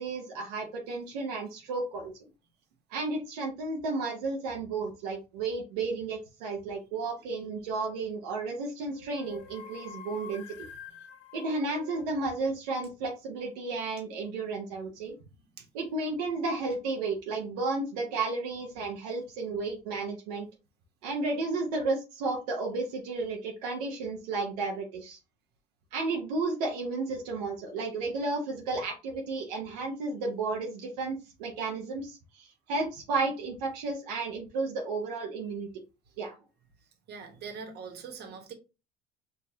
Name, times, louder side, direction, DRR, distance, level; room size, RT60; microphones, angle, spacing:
voice 1, 0.0-2.1 2.9-10.4 11.3-15.1 15.7-20.5 21.0-25.2 25.9-35.7 36.2-36.4, right 3 dB, 90° right, 0.8 m, -33 dB
sound 1, 7.7-8.1 8.9-12.4, left 7 dB, 70° left, 0.8 m, -47 dB
voice 2, 37.1-38.5, right 5 dB, 55° right, 1.2 m, -42 dB
4.8 x 2.6 x 2.6 m
supercardioid pair, 75°, 20 cm